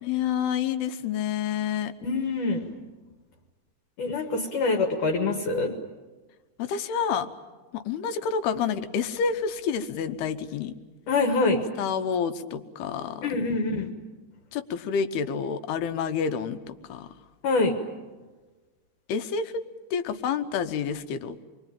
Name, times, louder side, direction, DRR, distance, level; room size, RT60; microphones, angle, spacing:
voice 1, 0.0-1.9 6.6-7.3 7.7-10.7 11.8-13.3 14.5-17.1 19.1-19.5 19.9-21.4, left 7 dB, 80° left, 10 dB, 3.0 m, -28 dB
voice 2, 2.0-2.7 4.0-5.7 11.1-11.6 13.2-13.9 17.4-17.7, left 3 dB, 60° left, 3 dB, 2.6 m, -25 dB
27.0 x 22.0 x 9.0 m, 1.3 s
omnidirectional pair, 4.6 m